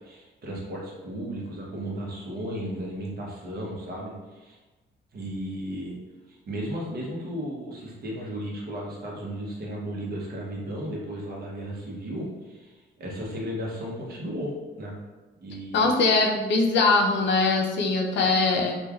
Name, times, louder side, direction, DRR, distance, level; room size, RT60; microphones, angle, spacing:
voice 1, 0.0-4.6 5.1-6.0 6.3-15.0 15.4-15.9, equal, 50° right, -3 dB, 0.9 m, -35 dB
voice 2, 15.7-18.8, left 3 dB, 65° left, 1 dB, 0.5 m, -22 dB
3.1 x 2.3 x 2.3 m, 1.2 s
cardioid pair, 90°, 20 cm